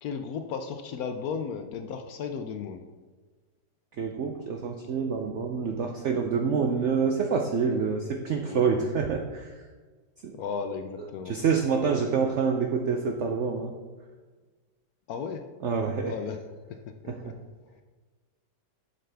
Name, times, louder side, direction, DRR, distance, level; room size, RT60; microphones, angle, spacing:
voice 1, 0.0-2.8 8.4-8.7 10.3-11.4 11.8-12.0 12.3-12.4 15.1-15.5 16.0-17.3 17.7-17.8, left 6 dB, 70° left, 6 dB, 0.9 m, -35 dB
voice 2, 4.0-9.5 10.2-10.4 11.3-13.7 15.6-16.1 17.1-17.3, right 5 dB, 75° right, 3 dB, 0.6 m, -27 dB
7.6 x 6.5 x 3.4 m, 1.4 s
omnidirectional pair, 1.9 m